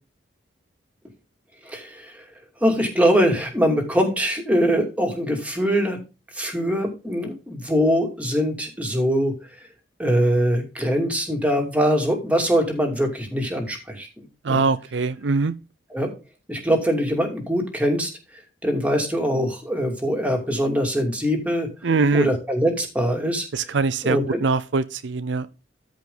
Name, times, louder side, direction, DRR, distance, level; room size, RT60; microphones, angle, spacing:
voice 1, 1.6-2.2 2.6-6.0 6.3-9.3 10.0-14.7 15.9-16.1 16.5-21.7 22.1-23.7 24.0-24.4, equal, 10° right, 2.6 m, -23 dB
voice 2, 14.4-15.5 21.8-22.3 23.5-25.5, right 4 dB, 70° right, 0.6 m, -22 dB
13.5 x 5.1 x 3.9 m
head